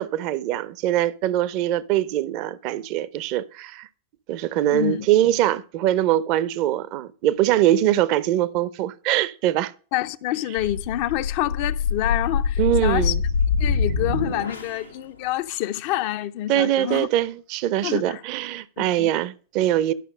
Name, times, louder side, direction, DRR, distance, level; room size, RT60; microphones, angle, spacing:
voice 1, 0.0-3.9 4.3-9.7 12.6-13.2 16.5-19.9, right 13 dB, 45° right, 0.6 m, -22 dB
voice 2, 4.7-5.1 9.9-13.1 13.6-17.1 17.8-18.2 18.8-19.1, left 15 dB, 45° left, 0.6 m, -27 dB
sound 1, 10.6-14.9, left 5 dB, 85° left, 1.1 m, -24 dB
11.5 x 5.8 x 5.3 m
figure-of-eight pair, 90°, 0 cm